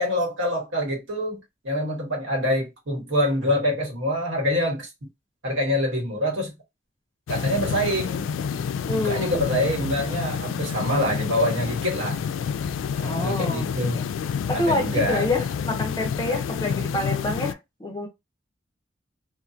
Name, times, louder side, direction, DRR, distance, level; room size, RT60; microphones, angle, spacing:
voice 1, 0.0-4.9 5.4-6.5 7.3-8.3 8.9-12.2 13.0-14.0 14.5-15.3 16.3-16.4, left 1 dB, 85° right, 1.5 m, -25 dB
sound 1, 7.3-17.5, left 7 dB, 85° left, 0.3 m, -29 dB
voice 2, 8.9-9.4 13.0-13.7 13.9-14.1 14.5-18.1, left 2 dB, 20° left, 0.7 m, -27 dB
2.8 x 2.5 x 2.4 m
head